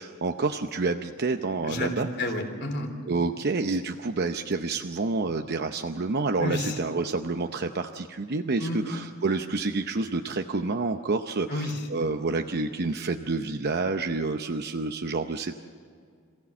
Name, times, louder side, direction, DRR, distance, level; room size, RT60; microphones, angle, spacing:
voice 1, 0.0-2.1 3.1-15.5, right 3 dB, 50° right, 5 dB, 0.7 m, -28 dB
voice 2, 1.6-2.9 6.4-6.8 8.6-8.9 11.5-11.8, left 1 dB, 55° left, 3 dB, 3.4 m, -30 dB
26.5 x 16.0 x 7.2 m, 2.2 s
head